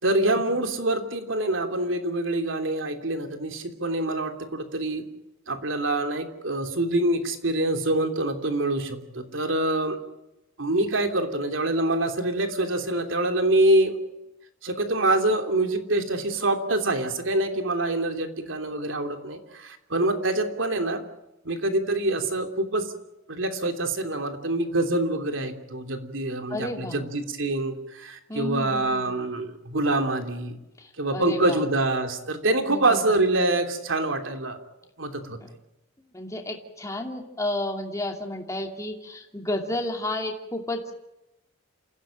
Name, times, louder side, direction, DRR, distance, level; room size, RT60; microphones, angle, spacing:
voice 1, 0.0-5.0 5.5-10.0 10.6-14.0 14.6-21.0 21.4-22.9 23.3-30.6 31.0-34.6 35.0-35.4, right 2 dB, 75° right, 6 dB, 3.1 m, -25 dB
voice 2, 26.5-27.1 28.3-29.2 30.8-31.6 32.7-33.0 36.1-40.9, left 1 dB, 15° left, 3 dB, 2.6 m, -32 dB
28.0 x 16.0 x 8.9 m, 0.94 s
head